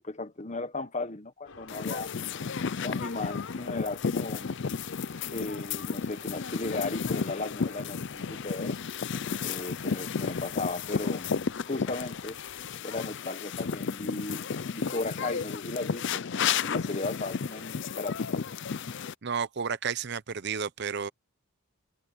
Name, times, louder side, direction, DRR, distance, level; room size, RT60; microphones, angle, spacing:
voice 1, 0.0-2.1 2.8-4.5 5.2-8.8 9.4-12.4 12.8-14.5 14.7-18.4, left 2 dB, 35° left, 1.3 m, -36 dB
sound 1, 1.5-12.8, left 3 dB, 85° left, 5.2 m, -49 dB
sound 2, 1.7-19.1, left 6 dB, 60° left, 0.5 m, -33 dB
voice 2, 19.2-21.1, right 6 dB, 55° right, 0.7 m, -32 dB
head